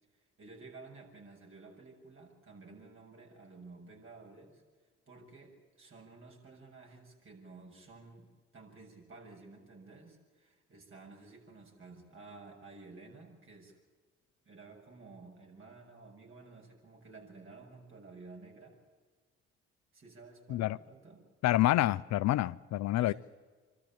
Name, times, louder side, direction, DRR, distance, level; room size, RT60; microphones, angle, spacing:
voice 1, 0.4-4.6 5.1-13.8 14.4-18.8 19.9-21.2 23.0-23.2, right 3 dB, 45° right, 7.3 m, -53 dB
voice 2, 21.4-23.1, left 15 dB, 65° left, 0.6 m, -27 dB
26.5 x 13.5 x 8.8 m
supercardioid pair, 60°, 29 cm